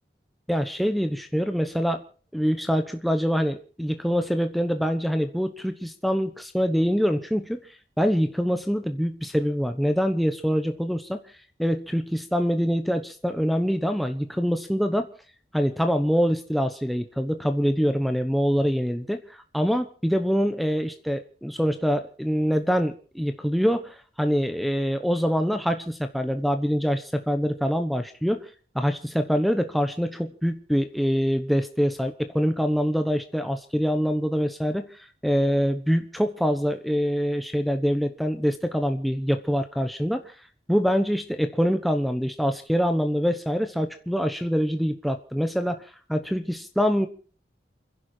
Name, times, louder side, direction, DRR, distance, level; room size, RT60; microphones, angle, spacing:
voice 1, 0.5-2.0 2.3-11.2 11.6-15.1 15.5-28.5 28.7-40.3 40.7-47.1, equal, ahead, 7 dB, 1.0 m, -25 dB
29.0 x 11.0 x 4.5 m, 0.42 s
head